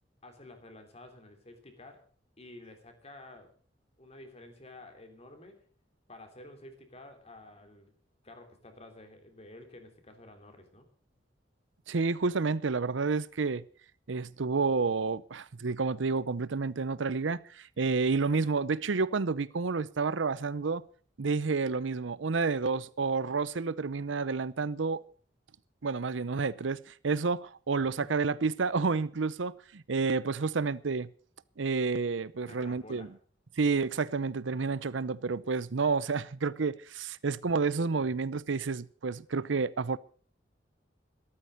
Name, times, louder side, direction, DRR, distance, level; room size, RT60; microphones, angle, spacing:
voice 1, 0.2-2.1 2.4-3.6 4.0-5.6 6.1-7.9 8.2-10.9 28.0-28.1 32.4-33.2 37.9-38.1, left 2 dB, 35° left, 3.2 m, -51 dB
voice 2, 11.9-13.6 14.1-20.8 21.2-25.0 25.8-31.1 31.6-33.1 33.6-40.0, right 4 dB, 85° right, 0.7 m, -30 dB
13.5 x 13.0 x 6.5 m
head